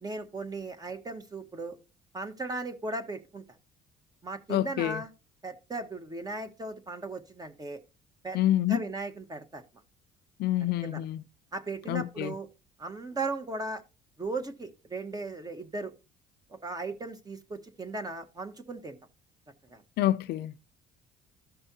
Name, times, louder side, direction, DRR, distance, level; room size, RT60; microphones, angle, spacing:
voice 1, 0.0-1.8 2.1-3.4 4.2-5.1 5.4-7.8 8.2-8.4 8.7-9.6 10.8-11.0 11.5-12.5 12.8-13.8 14.2-15.9 16.5-19.0 19.7-19.8, right 3 dB, 20° right, 1.4 m, -37 dB
voice 2, 4.5-5.0 8.3-8.8 10.4-11.2 11.9-12.3 20.0-20.6, left 13 dB, 75° left, 0.5 m, -27 dB
14.0 x 5.4 x 2.8 m
cardioid pair, 110°, 17 cm